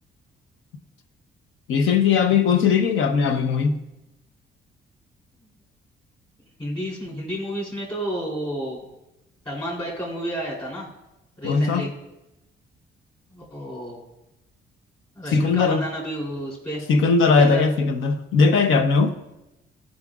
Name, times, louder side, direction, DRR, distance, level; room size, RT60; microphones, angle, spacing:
voice 1, 1.7-3.8 11.4-11.9 15.3-15.8 16.9-19.2, left 5 dB, 80° left, 0.8 m, -19 dB
voice 2, 6.6-8.8 9.4-10.9 11.4-11.9 13.3-14.0 15.1-16.8 17.4-17.6, equal, 25° left, 3.0 m, -31 dB
14.5 x 5.1 x 2.4 m
cardioid pair, 90°, 20 cm